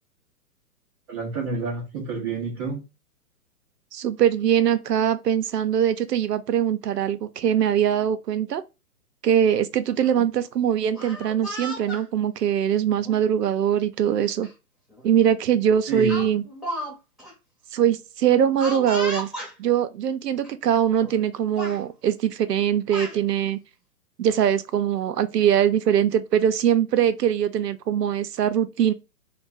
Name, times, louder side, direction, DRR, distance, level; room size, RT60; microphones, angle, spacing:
voice 1, 1.1-2.8 10.0-10.2 15.9-16.1, right 4 dB, 15° right, 0.5 m, -29 dB
voice 2, 3.9-8.6 9.2-14.5 15.0-16.4 17.7-19.3 19.6-23.6 24.2-28.9, right 9 dB, 90° right, 0.6 m, -22 dB
Speech, 10.8-12.0 12.9-13.2 14.4-14.5 14.9-15.1 16.1-16.9 17.2-17.3 18.6-19.5 20.4-20.5 20.9-21.3 21.6-21.8 22.6-23.2, equal, ahead, 0.8 m, -34 dB
2.6 x 2.3 x 3.8 m
hypercardioid pair, 130°, 47 cm